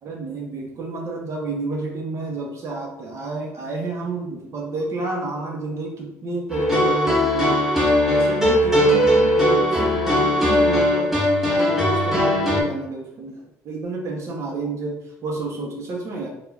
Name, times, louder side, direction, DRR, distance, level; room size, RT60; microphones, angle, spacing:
voice 1, 0.0-7.6 8.1-16.3, right 3 dB, 50° right, 0 dB, 0.8 m, -30 dB
sound 1, 6.5-12.6, equal, 5° right, 1.0 m, -19 dB
2.4 x 2.3 x 3.1 m, 0.84 s
cardioid pair, 90°, 6 cm